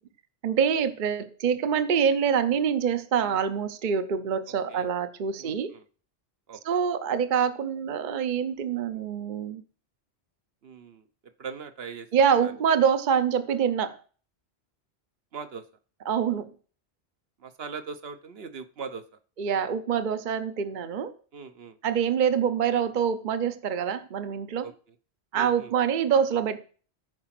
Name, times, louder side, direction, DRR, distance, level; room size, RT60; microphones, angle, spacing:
voice 1, 0.4-5.7 6.6-9.6 12.1-14.0 16.1-16.5 19.4-21.1 21.8-24.7 25.3-26.6, right 7 dB, 55° right, 0.8 m, -25 dB
voice 2, 5.4-5.8 6.5-6.6 10.6-11.0 11.4-12.1 12.4-12.5 15.3-15.6 17.4-19.0 21.3-21.8 24.6-24.7 25.3-25.7, right 5 dB, 70° right, 1.1 m, -40 dB
14.0 x 4.9 x 5.9 m
omnidirectional pair, 1.1 m